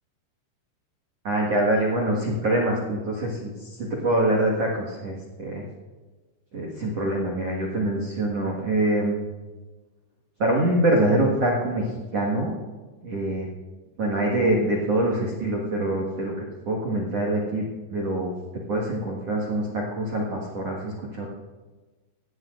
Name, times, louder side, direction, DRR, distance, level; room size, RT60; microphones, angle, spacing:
voice 1, 1.2-5.6 6.5-9.3 10.4-12.5 13.0-13.5 14.0-16.3 16.6-18.3 18.7-21.3, right 1 dB, 80° right, -2 dB, 1.4 m, -25 dB
19.0 x 14.5 x 2.5 m, 1.3 s
omnidirectional pair, 5.8 m